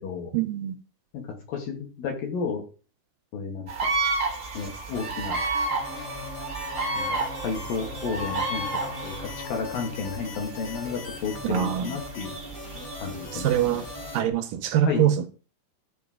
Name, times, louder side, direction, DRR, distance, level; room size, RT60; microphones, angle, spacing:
voice 1, 0.3-0.8 11.4-12.0 13.3-13.8 14.1-15.3, right 10 dB, 75° right, 2.1 m, -24 dB
voice 2, 1.1-2.6 3.3-3.7 4.5-5.4 6.9-7.2 7.4-8.7 9.0-9.2 9.5-12.4 13.0-13.8 14.9-15.1, left 5 dB, 65° left, 3.5 m, -32 dB
sound 1, 3.7-14.2, right 2 dB, 60° right, 0.8 m, -32 dB
sound 2, 4.5-14.2, left 2 dB, 45° left, 2.1 m, -42 dB
sound 3, 5.7-14.3, left 4 dB, 80° left, 5.2 m, -43 dB
13.5 x 4.6 x 3.7 m
omnidirectional pair, 4.7 m